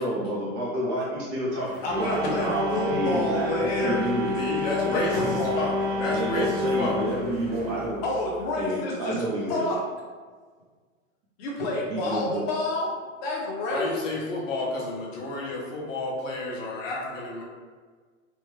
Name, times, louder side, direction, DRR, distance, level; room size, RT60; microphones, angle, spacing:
voice 1, 0.0-1.7 1.9-4.3 6.1-8.0 8.6-9.6 11.9-12.4, right 1 dB, 25° right, -6 dB, 0.5 m, -29 dB
sound 1, 1.5-7.9, equal, 45° right, 1.1 m, -41 dB
voice 2, 1.8-4.0 4.8-5.5 8.0-9.8 11.4-12.9 13.2-14.2, left 1 dB, 35° left, -3 dB, 0.9 m, -29 dB
sound 2, 1.9-8.6, left 3 dB, 70° right, 0.6 m, -30 dB
voice 3, 4.3-7.0 13.7-17.4, left 2 dB, 70° left, -3 dB, 1.0 m, -31 dB
3.5 x 2.1 x 3.1 m, 1.5 s
hypercardioid pair, 145°, 40 cm